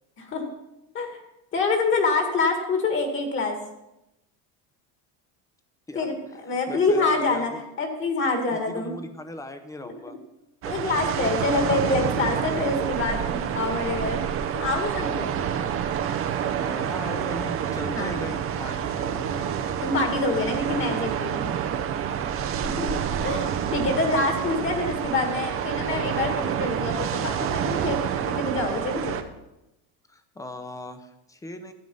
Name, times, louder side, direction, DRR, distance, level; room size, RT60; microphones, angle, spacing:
voice 1, 1.5-3.6 5.9-7.5 7.8-9.0 9.8-10.2 10.7-14.2 14.5-15.4 17.9-18.1 19.8-21.5 22.6-22.9 23.2-29.2, left 3 dB, 30° left, 5 dB, 2.0 m, -26 dB
voice 2, 6.5-7.6 8.5-10.2 10.6-11.5 16.5-19.7 20.3-21.2 22.6-23.1 30.1-31.7, left 1 dB, 10° left, 10 dB, 0.7 m, -38 dB
sound 1, 10.6-29.2, right 8 dB, 35° right, 0.8 m, -28 dB
13.0 x 9.0 x 5.4 m, 0.93 s
cardioid pair, 155°, 38 cm